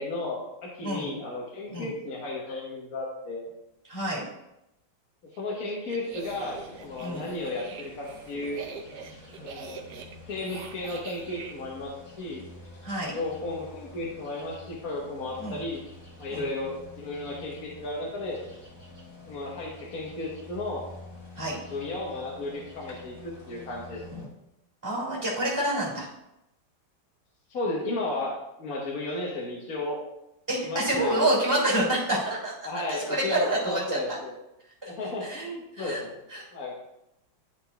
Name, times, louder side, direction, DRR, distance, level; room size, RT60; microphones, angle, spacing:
voice 1, 0.0-3.5 5.4-8.6 9.4-9.8 10.2-11.9 12.2-12.4 13.1-15.8 16.2-18.4 19.3-20.8 21.7-24.0 27.5-28.3 28.6-30.0 30.6-31.3 32.6-34.3 34.9-36.1 36.5-36.7, left 2 dB, 50° left, -3 dB, 1.5 m, -34 dB
voice 2, 0.8-1.1 1.7-1.9 3.9-4.2 7.0-7.3 12.8-13.1 15.4-15.6 16.3-16.5 21.4-21.5 24.8-26.1 30.5-32.5 32.9-34.2 35.2-35.5 35.8-36.0 36.3-36.5, right 1 dB, 15° right, -8 dB, 2.2 m, -28 dB
sound 1, 5.3-11.5, right 5 dB, 65° right, 1.3 m, -43 dB
sound 2, 6.1-24.3, left 2 dB, 35° left, 1.8 m, -48 dB
11.0 x 4.0 x 3.4 m, 0.87 s
omnidirectional pair, 2.0 m